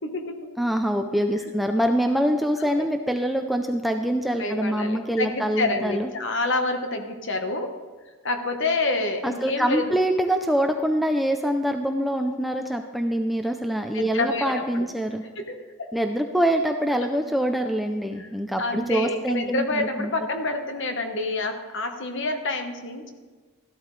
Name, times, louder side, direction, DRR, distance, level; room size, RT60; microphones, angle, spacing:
voice 1, 0.0-0.5 2.6-2.8 4.4-7.8 8.2-10.0 13.9-14.8 15.2-15.9 18.2-18.3 18.6-23.1, left 2 dB, 55° left, 6 dB, 1.1 m, -28 dB
voice 2, 0.6-6.1 9.2-15.2 15.9-20.1, equal, ahead, 4 dB, 0.4 m, -25 dB
13.5 x 12.0 x 3.2 m, 1.4 s
head